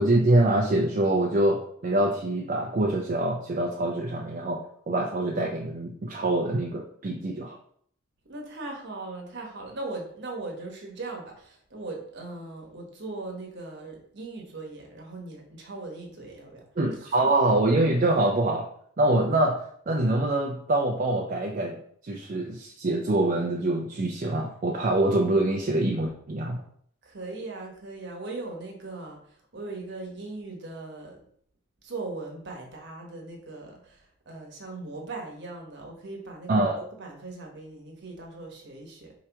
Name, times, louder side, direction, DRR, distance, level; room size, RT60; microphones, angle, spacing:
voice 1, 0.0-7.6 16.8-18.7 19.0-21.8 22.0-26.6 36.5-36.8, right 1 dB, 40° right, 0 dB, 0.5 m, -25 dB
voice 2, 8.3-16.6 17.2-17.3 27.0-31.2 31.8-39.1, right 2 dB, 55° right, 1 dB, 1.0 m, -39 dB
4.5 x 2.9 x 3.4 m, 0.62 s
head